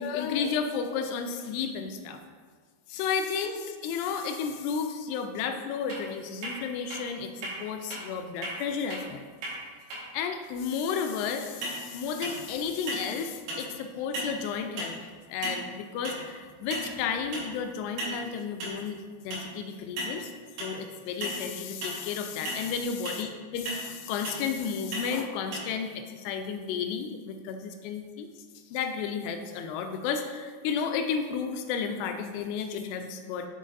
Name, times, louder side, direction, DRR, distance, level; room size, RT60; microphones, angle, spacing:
voice 1, 0.0-2.2 2.9-9.2 10.1-20.3 20.6-23.3 23.5-28.3 28.7-33.5, left 6 dB, 85° left, 6 dB, 2.7 m, -32 dB
sound 1, 5.9-6.0 6.4-6.5 6.9-7.0 7.4-7.5 7.9-8.0 8.4-8.5 8.9-9.0 9.4-9.5 9.9-10.0 11.6-11.8 12.2-12.5 12.9-13.1 13.5-13.7 14.1-14.4 14.8-14.9 15.4-15.7 16.0-16.2 16.7-17.0 17.3-17.5 18.0-18.2 18.6-18.8 19.3-19.5 20.0-20.1 20.6-20.8 21.2-21.4 21.8-22.0 22.4-22.6 23.0-23.2 23.6-23.9 24.2-24.4 24.9-25.1 25.5-25.6, right 1 dB, 65° right, 3.2 m, -35 dB
7.4 x 4.0 x 3.9 m, 1.5 s
omnidirectional pair, 4.7 m